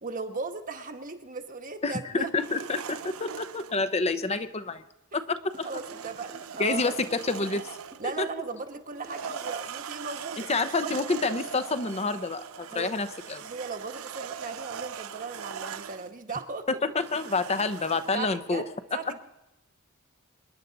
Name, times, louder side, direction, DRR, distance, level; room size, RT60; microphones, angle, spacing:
voice 1, 0.0-2.3 5.6-6.9 8.0-10.5 10.8-11.0 12.7-12.9 13.4-16.7 18.1-19.2, right 4 dB, 40° right, 5 dB, 1.2 m, -37 dB
voice 2, 1.8-4.8 5.1-5.7 6.6-7.7 8.2-8.3 10.5-13.4 16.7-18.6, left 3 dB, 30° left, 10 dB, 0.8 m, -28 dB
sound 1, 2.4-3.8 5.5-8.1 8.9-16.1 17.0-18.2, right 7 dB, 85° right, 0.6 m, -40 dB
sound 2, 5.5-9.5, right 1 dB, 20° right, 1.2 m, -51 dB
26.0 x 10.5 x 4.0 m, 0.95 s
head